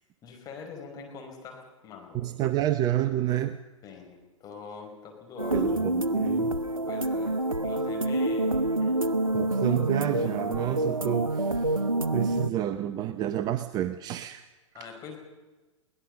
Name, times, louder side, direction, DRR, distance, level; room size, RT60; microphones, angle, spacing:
voice 1, 0.2-2.3 3.8-5.6 6.9-9.0 14.7-15.2, left 5 dB, 20° left, 2 dB, 5.4 m, -43 dB
voice 2, 2.1-3.6 5.5-6.6 9.3-11.8 12.1-14.5 14.7-15.1, right 12 dB, 25° right, 12 dB, 0.7 m, -29 dB
sound 1, 5.4-12.5, right 2 dB, 90° right, 0.9 m, -27 dB
22.5 x 18.0 x 6.7 m, 1.2 s
figure-of-eight pair, 110°, 17 cm